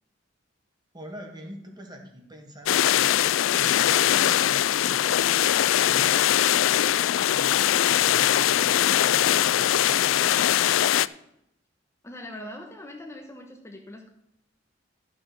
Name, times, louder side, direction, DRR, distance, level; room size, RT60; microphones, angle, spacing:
voice 1, 0.9-3.1 3.5-5.3 5.7-10.7, equal, 20° right, 3 dB, 1.9 m, -44 dB
sound 1, 2.7-11.1, left 11 dB, 85° left, 0.4 m, -21 dB
voice 2, 12.0-14.1, left 1 dB, 15° left, 2 dB, 1.1 m, -41 dB
11.5 x 6.7 x 5.8 m, 0.80 s
head